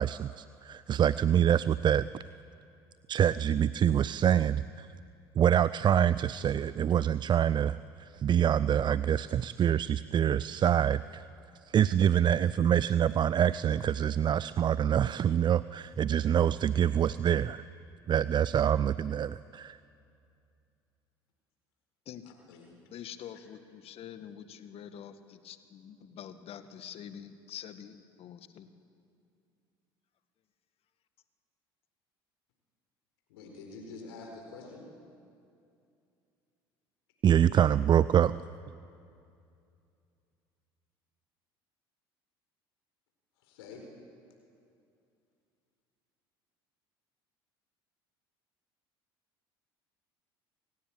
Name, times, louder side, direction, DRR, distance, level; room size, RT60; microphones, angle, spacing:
voice 1, 0.0-2.1 3.1-4.9 5.4-11.3 11.7-17.6 18.1-19.8 37.2-38.4, right 9 dB, 35° right, 17 dB, 0.5 m, -26 dB
voice 2, 22.9-28.7, left 9 dB, 50° left, 10 dB, 1.8 m, -46 dB
voice 3, 33.3-34.8 43.5-43.8, left 3 dB, 75° left, 2 dB, 4.4 m, -46 dB
28.5 x 17.5 x 8.8 m, 2.5 s
hypercardioid pair, 65°, 13 cm